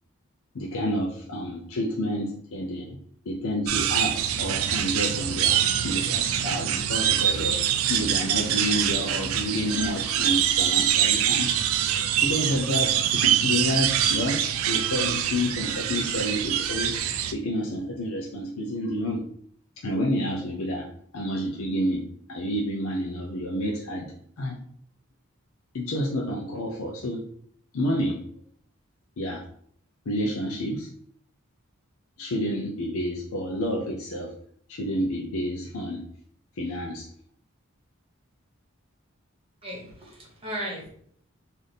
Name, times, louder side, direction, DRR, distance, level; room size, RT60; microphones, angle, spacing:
voice 1, 0.5-3.0 3.3-7.6 7.9-11.5 12.2-14.4 14.7-16.9 17.3-19.2 19.8-22.0 22.3-24.6 25.7-27.2 27.7-28.2 29.2-29.4 30.1-30.9 32.2-34.3 34.7-36.0 36.6-37.1, equal, 85° left, -1 dB, 0.6 m, -29 dB
sound 1, 3.7-17.3, right 10 dB, 80° right, 0.4 m, -24 dB
voice 2, 39.6-40.9, equal, 25° right, -2 dB, 1.2 m, -36 dB
3.3 x 2.7 x 4.0 m, 0.62 s
head